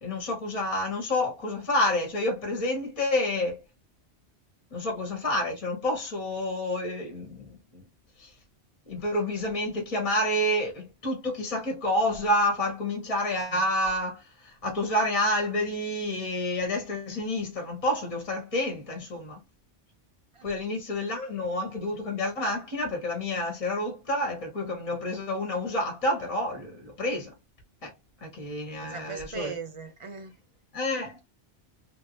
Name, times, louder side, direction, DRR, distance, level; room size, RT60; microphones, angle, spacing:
voice 1, 0.0-3.6 4.7-7.5 7.7-7.8 8.2-8.3 8.9-19.4 20.4-27.3 27.8-27.9 28.2-29.5 30.7-31.2, left 1 dB, 30° left, 1.1 m, -29 dB
voice 2, 28.8-30.3, right 5 dB, 55° right, 0.3 m, -39 dB
3.3 x 2.6 x 2.9 m
omnidirectional pair, 1.2 m